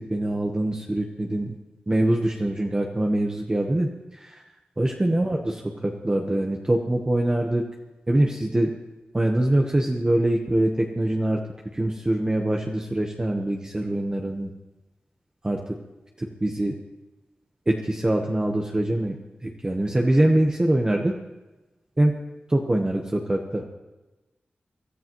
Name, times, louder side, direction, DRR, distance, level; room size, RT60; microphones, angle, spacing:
voice 1, 0.0-1.5 1.9-4.4 4.8-7.6 8.1-8.7 9.1-11.4 11.7-14.5 15.4-15.8 16.2-16.7 17.7-19.1 19.4-21.1 22.0-22.1 22.5-23.6, right 1 dB, 20° right, 1 dB, 1.0 m, -24 dB
23.5 x 13.5 x 3.0 m, 1.1 s
wide cardioid pair, 120°, 3 cm